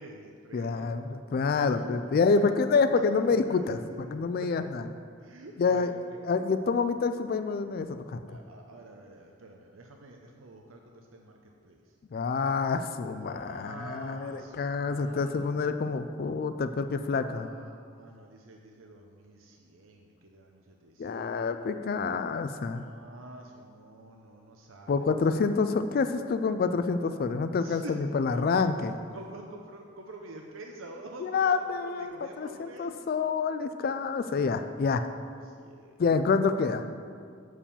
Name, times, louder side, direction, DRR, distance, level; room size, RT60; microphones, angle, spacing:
voice 1, 0.0-1.1 1.6-2.6 3.3-4.5 5.2-6.2 8.3-11.8 13.2-15.5 17.2-21.5 22.7-25.1 25.3-25.6 26.2-26.4 27.6-28.0 28.3-28.6 29.1-33.0 35.4-35.9, right 2 dB, 80° right, 1 dB, 0.7 m, -47 dB
voice 2, 0.5-4.8 5.6-5.9 6.3-8.2 12.1-17.5 21.0-22.9 24.9-28.9 31.2-35.1 36.0-36.9, left 4 dB, 45° left, 10 dB, 0.3 m, -27 dB
7.2 x 4.7 x 6.9 m, 2.1 s
head